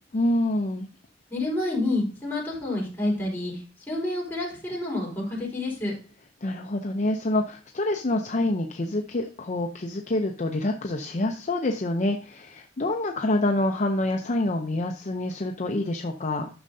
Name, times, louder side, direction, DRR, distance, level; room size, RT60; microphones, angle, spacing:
voice 1, 0.1-0.9 6.4-16.5, left 1 dB, 40° left, 3 dB, 0.6 m, -27 dB
voice 2, 1.3-3.5 3.9-5.9, left 2 dB, 10° left, -4 dB, 4.4 m, -28 dB
11.0 x 6.5 x 2.7 m, 0.38 s
head